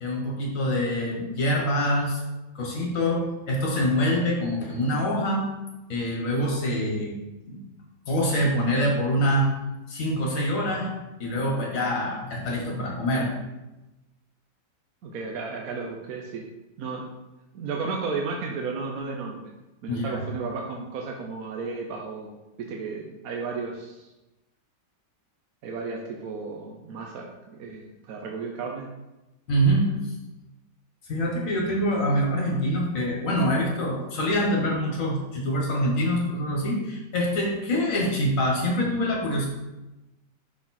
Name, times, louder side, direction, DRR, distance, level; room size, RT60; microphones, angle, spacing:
voice 1, 0.0-2.2 2.5-5.5 5.9-7.2 7.5-7.6 8.1-9.5 9.9-10.9 11.2-13.3 19.9-20.3 29.5-30.1 31.1-39.5, equal, 50° left, -1 dB, 1.6 m, -25 dB
voice 2, 15.0-16.5 16.8-17.1 17.5-19.6 19.8-24.1 25.6-28.9, right 4 dB, 65° right, 0 dB, 1.0 m, -34 dB
5.7 x 4.2 x 4.2 m, 1.0 s
omnidirectional pair, 1.9 m